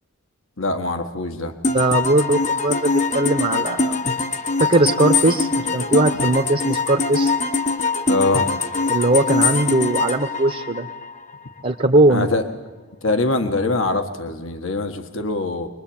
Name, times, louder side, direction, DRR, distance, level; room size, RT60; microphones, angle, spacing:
voice 1, 0.6-1.5 8.1-8.5 12.1-12.4 13.0-15.7, left 2 dB, 65° left, 6 dB, 1.7 m, -23 dB
sound 1, 1.6-11.3, left 4 dB, 35° left, 1.2 m, -23 dB
voice 2, 1.6-4.0 4.6-7.3 8.9-10.9 11.6-12.3, right 2 dB, 35° right, 6 dB, 1.2 m, -19 dB
26.0 x 21.0 x 8.9 m, 1.3 s
head